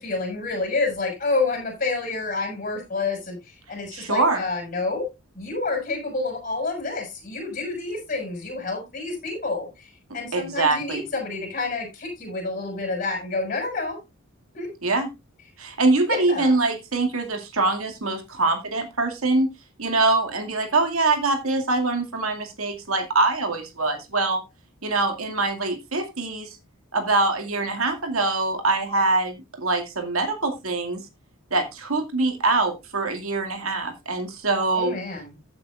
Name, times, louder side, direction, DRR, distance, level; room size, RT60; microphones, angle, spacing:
voice 1, 0.0-5.1 5.3-14.0 14.5-14.7 16.1-16.6 34.8-35.4, left 3 dB, 40° left, 2 dB, 6.5 m, -29 dB
voice 2, 3.9-4.4 10.3-11.0 14.8-15.1 15.6-19.5 19.8-24.4 24.8-26.6 26.9-31.0 31.5-34.9, right 3 dB, 85° right, 6 dB, 2.3 m, -24 dB
15.0 x 8.8 x 2.5 m, 0.24 s
head